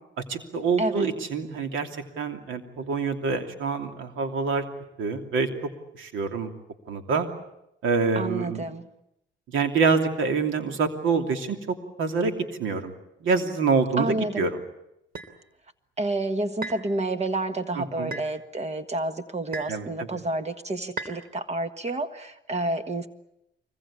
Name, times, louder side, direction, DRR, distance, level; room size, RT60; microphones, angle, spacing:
voice 1, 0.2-1.9 2.2-4.6 5.0-5.5 6.0-6.5 6.9-7.3 7.8-8.6 9.5-12.3 12.6-12.9 13.2-14.6 17.8-18.1 19.7-20.2, right 4 dB, 80° right, 5 dB, 3.0 m, -26 dB
voice 2, 0.8-1.1 8.1-8.9 14.0-14.5 16.0-23.1, right 2 dB, 35° right, 9 dB, 1.6 m, -29 dB
sound 1, 15.2-15.3 16.6-16.9 18.1-18.3 19.5-19.8 21.0-21.2, right 3 dB, 50° right, 3.1 m, -35 dB
24.5 x 21.5 x 8.7 m, 0.84 s
cardioid pair, 90°, 20 cm